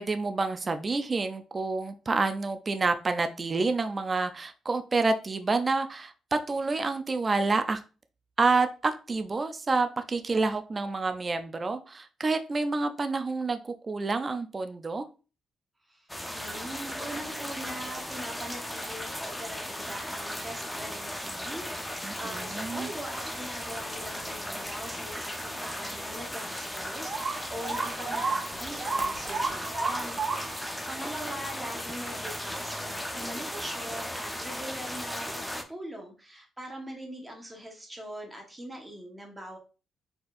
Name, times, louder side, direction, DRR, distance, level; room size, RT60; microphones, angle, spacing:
voice 1, 0.0-7.8 8.4-15.0 22.0-22.9, right 3 dB, 30° right, 8 dB, 0.4 m, -28 dB
voice 2, 15.9-39.6, right 1 dB, 15° right, 0 dB, 1.2 m, -42 dB
sound 1, 16.1-35.6, left 1 dB, 5° left, 0.7 m, -36 dB
sound 2, 27.0-30.7, right 4 dB, 45° right, 1.6 m, -32 dB
4.3 x 4.2 x 2.5 m, 0.34 s
cardioid pair, 90°, 0 cm